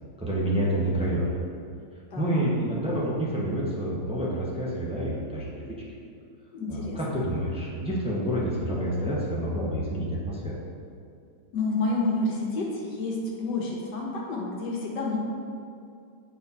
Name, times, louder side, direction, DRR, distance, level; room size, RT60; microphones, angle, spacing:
voice 1, 0.2-1.3 2.2-5.7 6.7-10.6, right 1 dB, 10° right, -5 dB, 0.3 m, -28 dB
voice 2, 2.1-2.4 6.5-7.2 11.5-15.2, left 2 dB, 75° left, -2 dB, 1.7 m, -29 dB
7.1 x 4.1 x 4.1 m, 2.4 s
omnidirectional pair, 2.0 m